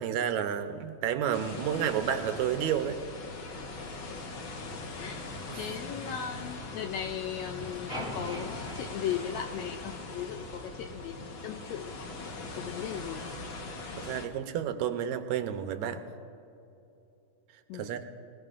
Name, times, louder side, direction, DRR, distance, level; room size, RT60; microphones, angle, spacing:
voice 1, 0.0-3.0 5.5-5.7 14.0-16.0 17.7-18.1, right 9 dB, 75° right, 8 dB, 2.0 m, -31 dB
sound 1, 1.3-14.3, left 3 dB, 55° left, 1.5 m, -41 dB
voice 2, 5.6-12.1 12.5-13.3 17.7-17.9, left 9 dB, 80° left, 6 dB, 1.7 m, -37 dB
sound 2, 7.9-10.2, equal, ahead, 2.1 m, -42 dB
21.0 x 19.5 x 2.5 m, 2.8 s
omnidirectional pair, 3.6 m